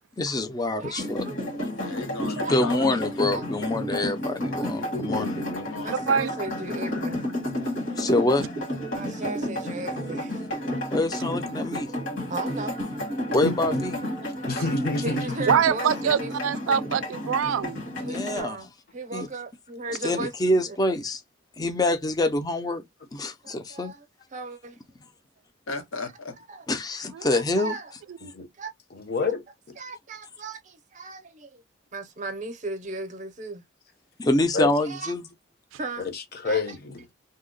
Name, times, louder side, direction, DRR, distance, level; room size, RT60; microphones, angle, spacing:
voice 1, 0.2-1.2 2.5-5.4 8.0-8.5 10.9-11.9 13.3-13.9 18.0-18.6 19.1-19.3 20.0-21.2 21.6-22.8 23.1-23.9 26.7-27.7 34.2-35.2, left 2 dB, 20° left, 0.4 m, -25 dB
voice 2, 0.8-1.7 2.4-3.9 5.8-7.2 8.9-10.4 12.3-12.8 15.0-16.3 18.0-20.8 23.4-24.1 24.3-24.8 26.5-26.6 27.3-27.9 28.6-28.7 29.8-31.6 31.9-33.6 34.8-35.1 35.8-36.1 36.4-36.8, right 3 dB, 40° right, 0.6 m, -36 dB
sound 1, 1.0-18.4, left 1 dB, 65° left, 1.4 m, -31 dB
voice 3, 1.7-2.8 5.5-6.5 6.9-7.1 7.9-8.0 25.7-26.3, left 3 dB, 85° left, 0.9 m, -36 dB
voice 4, 4.8-5.7 7.1-7.2 13.4-13.5 14.5-15.4 28.3-28.5 28.9-29.4 29.7-29.8 34.5-34.7 36.0-37.0, left 3 dB, 50° left, 0.7 m, -29 dB
voice 5, 15.5-17.8 27.1-27.3 28.2-28.3, right 7 dB, 80° right, 0.3 m, -24 dB
2.7 x 2.1 x 3.7 m
head